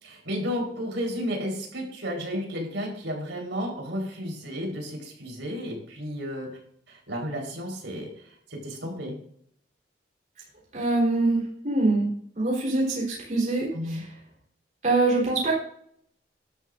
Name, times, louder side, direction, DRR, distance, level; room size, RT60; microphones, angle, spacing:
voice 1, 0.0-6.6 6.9-8.1 8.5-9.2 13.7-14.1, equal, 85° right, 0 dB, 4.4 m, -32 dB
voice 2, 10.7-14.1 14.8-15.5, right 2 dB, 45° right, -5 dB, 4.0 m, -24 dB
13.5 x 12.0 x 2.6 m, 0.65 s
head